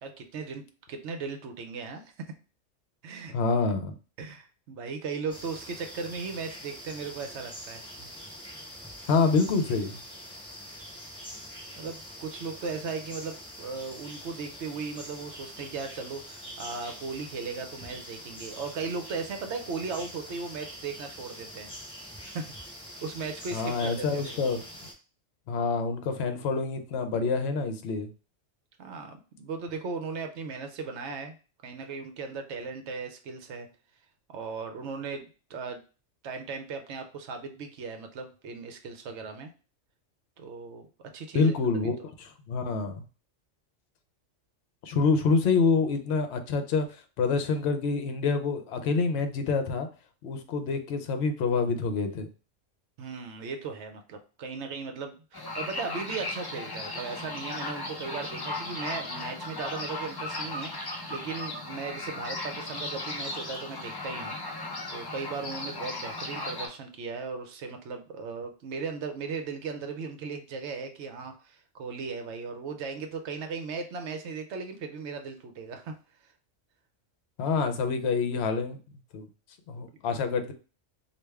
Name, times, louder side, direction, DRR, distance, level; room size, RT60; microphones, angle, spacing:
voice 1, 0.0-2.1 3.0-3.3 4.2-8.1 11.3-11.4 11.8-21.7 22.3-22.5 23.0-24.6 28.8-31.4 31.6-33.7 34.3-35.2 35.5-35.8 36.2-39.5 40.4-40.9 41.1-41.5 53.0-64.4 64.9-75.9 80.1-80.2, right 4 dB, 65° right, 5 dB, 0.8 m, -37 dB
voice 2, 3.3-3.9 9.1-9.9 23.5-24.6 25.5-28.1 41.3-43.0 44.8-46.9 47.2-49.9 50.2-52.3 77.4-78.8 79.1-79.3 79.7-80.5, left 4 dB, 65° left, 7 dB, 0.8 m, -27 dB
sound 1, 5.3-24.9, equal, 5° left, 0.7 m, -44 dB
sound 2, 55.3-66.7, left 2 dB, 35° left, 0.3 m, -36 dB
3.3 x 2.4 x 3.3 m, 0.34 s
omnidirectional pair, 1.3 m